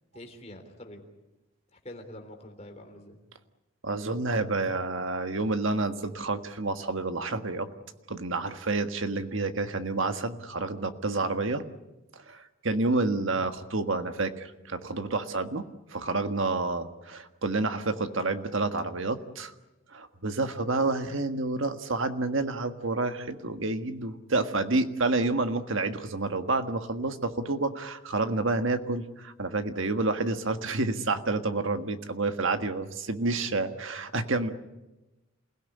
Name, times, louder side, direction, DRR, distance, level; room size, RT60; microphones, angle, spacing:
voice 1, 0.1-1.1 1.7-3.2, left 1 dB, 30° left, 4 dB, 3.5 m, -45 dB
voice 2, 3.8-7.7 8.1-11.6 12.1-15.6 15.9-19.5 19.9-34.5, right 3 dB, 65° right, 8 dB, 1.6 m, -29 dB
28.5 x 17.0 x 9.9 m, 1.1 s
head